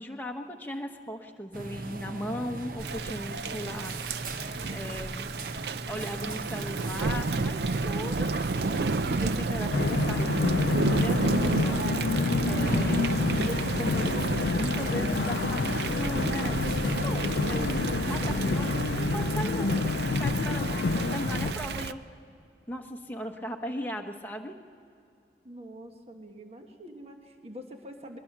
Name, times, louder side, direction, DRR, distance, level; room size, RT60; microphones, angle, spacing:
voice 1, 0.0-4.2 4.7-5.3 5.9-10.4 10.9-12.0 12.5-14.3 14.5-16.7 17.0-17.7 18.0-22.0 22.7-24.5, equal, 10° left, 2 dB, 1.1 m, -38 dB
sound 1, 1.5-18.5, right 2 dB, 50° right, 0.9 m, -38 dB
Thunder / Rain, 2.8-21.9, right 3 dB, 70° right, 0.5 m, -31 dB
sound 2, 9.7-21.5, left 3 dB, 80° left, 0.5 m, -28 dB
voice 2, 25.4-28.2, equal, 35° right, 4 dB, 1.3 m, -45 dB
22.0 x 20.5 x 6.0 m, 2.5 s
head